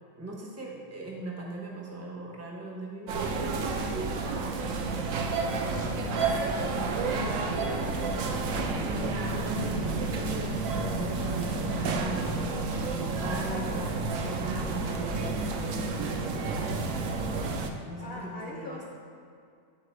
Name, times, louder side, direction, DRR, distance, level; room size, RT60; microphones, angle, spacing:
voice 1, 0.2-3.2 6.1-6.3 8.8-16.6 17.8-18.9, right 2 dB, 25° right, -2 dB, 0.3 m, -40 dB
sound 1, 3.1-17.7, right 3 dB, 85° right, 0.7 m, -30 dB
voice 2, 5.9-6.8 7.1-8.5 13.4-14.1 16.8-17.0 18.0-18.9, left 2 dB, 60° left, -3 dB, 0.6 m, -41 dB
9.8 x 4.0 x 4.5 m, 2.3 s
omnidirectional pair, 2.1 m